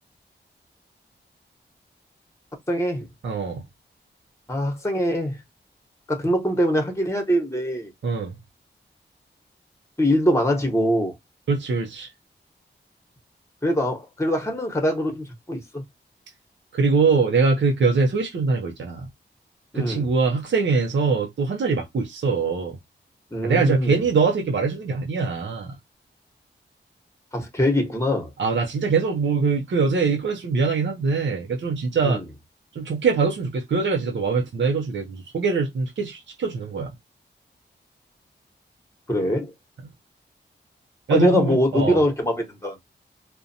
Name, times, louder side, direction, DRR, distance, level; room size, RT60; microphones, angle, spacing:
voice 1, 2.7-3.0 4.5-5.4 6.1-7.9 10.0-11.1 13.6-15.8 19.7-20.1 23.3-24.0 27.3-28.3 32.0-32.2 39.1-39.5 41.1-42.8, equal, 15° left, 1.0 m, -23 dB
voice 2, 3.2-3.6 8.0-8.3 11.5-12.1 16.7-19.1 19.7-22.8 23.4-25.8 28.4-32.2 32.7-36.9 41.1-42.0, right 4 dB, 70° right, 0.6 m, -23 dB
2.5 x 2.2 x 2.6 m
cardioid pair, 50°, 19 cm